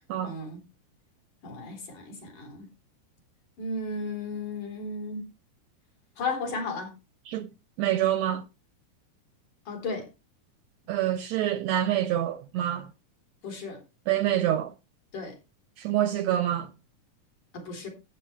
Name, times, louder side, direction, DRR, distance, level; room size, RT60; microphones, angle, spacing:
voice 1, 0.2-0.6 1.4-2.7 3.6-5.2 6.2-6.9 9.7-10.1 13.4-13.8 15.1-15.4 17.5-17.9, left 3 dB, 70° left, 5.4 m, -34 dB
voice 2, 7.8-8.4 10.9-12.9 14.1-14.7 15.8-16.7, right 12 dB, 75° right, 1.6 m, -26 dB
14.5 x 8.0 x 3.3 m
omnidirectional pair, 3.7 m